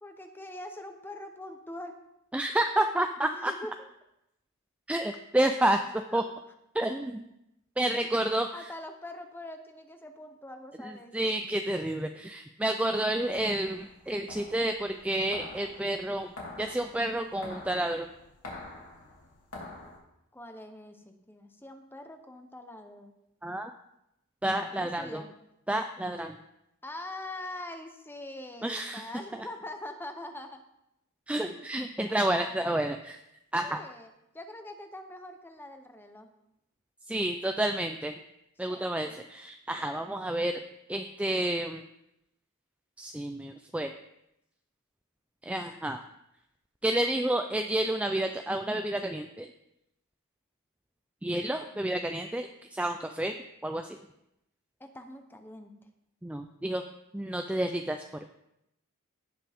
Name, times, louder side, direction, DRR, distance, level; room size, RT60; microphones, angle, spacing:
voice 1, 0.0-2.0 3.3-3.9 6.1-6.2 8.5-11.2 20.3-23.1 24.8-25.3 26.8-30.6 32.1-32.8 33.6-34.1 34.3-36.3 38.6-38.8 39.1-39.3 39.8-40.1 54.8-55.7, left 1 dB, 10° left, 6 dB, 0.9 m, -43 dB
voice 2, 2.3-3.5 4.9-6.2 6.7-7.3 7.8-8.7 10.8-18.1 23.4-23.7 24.4-25.2 25.7-26.4 28.6-29.1 31.3-33.2 33.5-33.8 37.1-38.2 38.6-40.6 40.9-41.8 43.0-43.9 45.4-46.0 46.8-49.5 51.2-53.4 53.6-54.0 56.2-56.8 57.1-58.0, right 1 dB, 5° right, 6 dB, 0.4 m, -30 dB
sound 1, 13.0-20.0, left 2 dB, 85° left, 2.8 m, -47 dB
17.0 x 5.9 x 3.6 m, 0.84 s
head